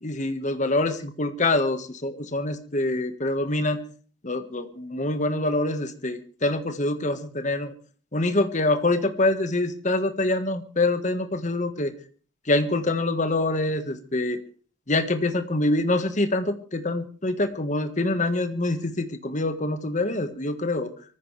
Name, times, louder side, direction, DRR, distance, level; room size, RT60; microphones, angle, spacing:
voice 1, 0.0-3.8 4.2-7.7 8.1-11.9 12.5-14.4 14.9-20.9, left 2 dB, 40° left, 9 dB, 1.6 m, -25 dB
24.0 x 14.5 x 3.4 m, 0.40 s
head